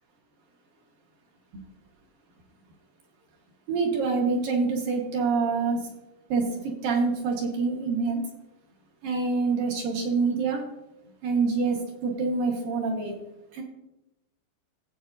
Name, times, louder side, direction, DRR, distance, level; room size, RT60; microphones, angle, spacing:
voice 1, 3.7-5.9 6.3-8.2 9.0-10.6 11.2-13.1 13.5-13.6, right 4 dB, 60° right, 0 dB, 2.6 m, -26 dB
17.0 x 7.8 x 2.7 m, 0.91 s
omnidirectional pair, 5.3 m